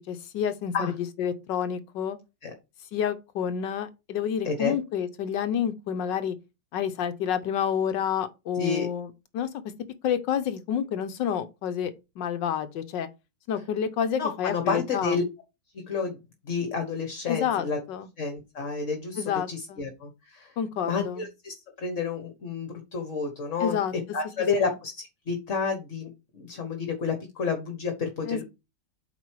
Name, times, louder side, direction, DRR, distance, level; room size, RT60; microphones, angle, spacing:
voice 1, 0.1-2.2 2.9-6.4 6.7-9.5 10.0-11.9 12.2-13.1 13.5-15.2 17.3-18.1 19.2-19.8 20.6-21.3 23.6-23.9 24.6-24.7 28.2-28.4, left 8 dB, 80° left, 1.5 m, -29 dB
voice 2, 4.4-4.7 8.6-8.9 14.2-15.2 15.9-16.2 16.4-17.8 18.2-20.5 20.8-23.8 24.1-28.4, left 5 dB, 45° left, 1.6 m, -30 dB
8.3 x 4.8 x 4.7 m
omnidirectional pair, 1.9 m